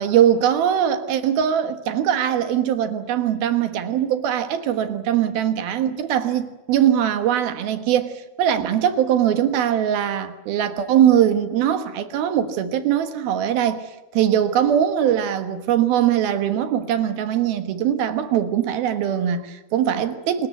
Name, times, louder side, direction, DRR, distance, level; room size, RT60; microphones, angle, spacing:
voice 1, 0.0-13.8 14.1-20.5, right 10 dB, 70° right, 3.1 m, -21 dB
26.5 x 20.5 x 8.0 m
omnidirectional pair, 4.7 m